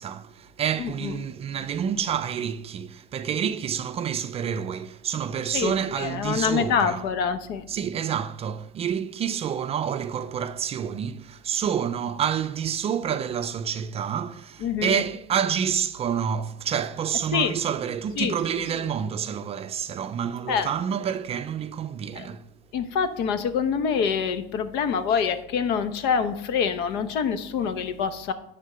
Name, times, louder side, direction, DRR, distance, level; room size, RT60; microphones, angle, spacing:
voice 1, 0.0-7.1 7.7-22.4, right 8 dB, 30° right, 0.4 m, -28 dB
voice 2, 0.8-1.2 5.5-5.7 6.0-7.6 14.6-15.0 17.3-17.5 18.2-18.3 20.5-20.7 22.1-22.3 22.7-28.3, left 6 dB, 65° left, 0.9 m, -25 dB
10.5 x 3.7 x 6.6 m
supercardioid pair, 120°, 19 cm